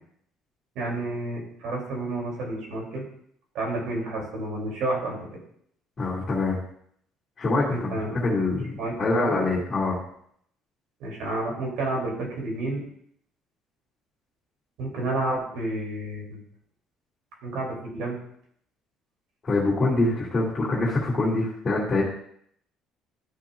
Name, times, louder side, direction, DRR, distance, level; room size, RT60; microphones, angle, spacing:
voice 1, 0.7-3.0 3.5-5.2 7.7-8.2 8.8-9.4 11.0-12.8 14.8-16.4 17.4-18.2, right 2 dB, 75° right, -1 dB, 2.9 m, -30 dB
voice 2, 6.0-6.6 7.4-10.0 19.4-22.0, left 2 dB, 25° left, -7 dB, 2.4 m, -25 dB
12.5 x 5.8 x 2.5 m, 0.68 s
cardioid pair, 130°, 0 cm